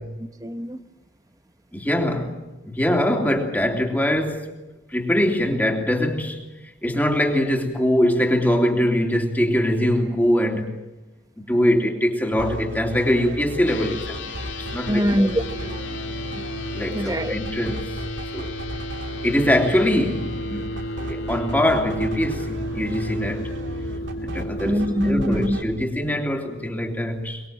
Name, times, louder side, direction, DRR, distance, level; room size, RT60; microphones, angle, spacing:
voice 1, 0.2-0.8 14.9-16.0 16.9-17.3 24.6-25.6, equal, 20° right, 10 dB, 1.0 m, -24 dB
voice 2, 1.7-4.5 4.9-6.4 6.8-10.8 11.5-15.1 16.7-17.9 18.3-18.5 19.2-20.7 21.1-23.5 24.2-27.4, equal, 10° left, 2 dB, 3.0 m, -23 dB
sound 1, 12.4-25.6, equal, 75° right, 2.9 m, -35 dB
sound 2, 13.6-25.5, left 1 dB, 75° left, 2.4 m, -33 dB
sound 3, 18.5-25.5, left 1 dB, 60° left, 2.1 m, -40 dB
24.0 x 21.5 x 7.6 m, 1.1 s
head